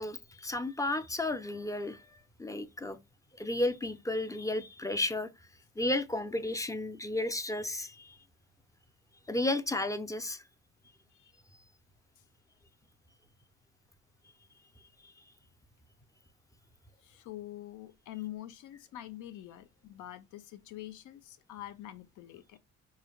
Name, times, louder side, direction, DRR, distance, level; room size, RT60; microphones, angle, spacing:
voice 1, 0.0-2.0 2.4-3.0 3.4-5.3 5.8-8.2 9.3-10.4 15.0-15.1, left 2 dB, 10° left, 0.4 m, -33 dB
voice 2, 17.0-22.6, left 13 dB, 85° left, 0.6 m, -45 dB
4.6 x 3.2 x 2.3 m
cardioid pair, 90°, 30 cm